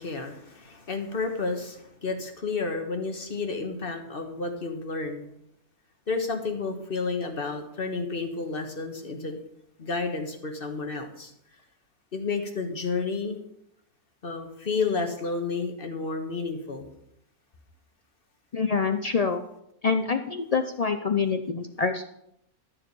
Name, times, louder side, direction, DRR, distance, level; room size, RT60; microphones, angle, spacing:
voice 1, 0.0-5.3 6.1-9.4 9.8-11.3 12.1-13.4 14.2-16.9, left 4 dB, 40° left, 4 dB, 1.5 m, -31 dB
voice 2, 18.5-19.5 19.8-22.0, left 5 dB, 85° left, 7 dB, 0.3 m, -26 dB
12.5 x 7.3 x 5.5 m, 0.78 s
omnidirectional pair, 1.5 m